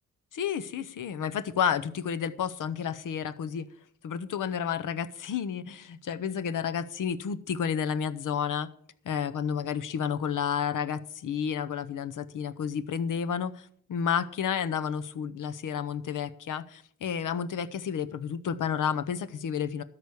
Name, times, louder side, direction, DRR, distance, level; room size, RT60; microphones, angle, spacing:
voice 1, 0.3-3.7 4.0-8.7 9.0-19.8, left 7 dB, 80° left, 0.8 m, -31 dB
13.0 x 5.0 x 8.3 m
cardioid pair, 75°, 31 cm